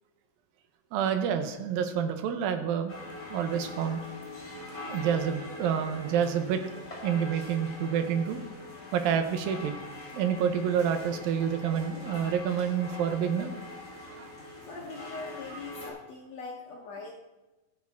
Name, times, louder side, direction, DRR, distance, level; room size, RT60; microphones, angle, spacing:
voice 1, 0.9-3.0 3.3-4.0 4.8-6.6 7.0-8.4 8.9-9.7 10.1-13.5 14.1-14.3 15.5-15.6, right 8 dB, 80° right, 8 dB, 2.6 m, -28 dB
sound 1, 2.9-15.9, left 2 dB, 20° left, 3.2 m, -43 dB
voice 2, 14.6-17.1, left 4 dB, 70° left, -1 dB, 1.7 m, -42 dB
15.5 x 7.3 x 3.5 m, 1.1 s
omnidirectional pair, 4.1 m